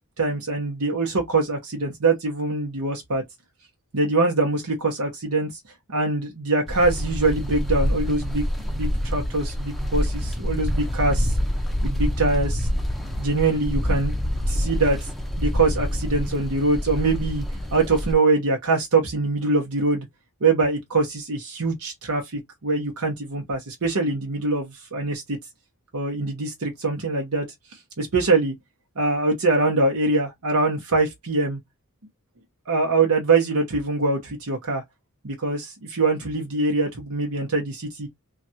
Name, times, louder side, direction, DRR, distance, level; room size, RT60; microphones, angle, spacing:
voice 1, 0.2-3.2 3.9-5.5 5.9-11.3 11.8-12.7 13.2-14.2 14.5-15.1 15.4-17.4 17.7-20.1 20.4-25.4 25.9-27.5 28.0-28.5 29.0-31.6 32.7-34.8 35.2-38.1, right 3 dB, 80° right, 0.9 m, -23 dB
sound 1, 6.7-18.1, equal, ahead, 0.5 m, -26 dB
3.2 x 2.4 x 2.7 m
head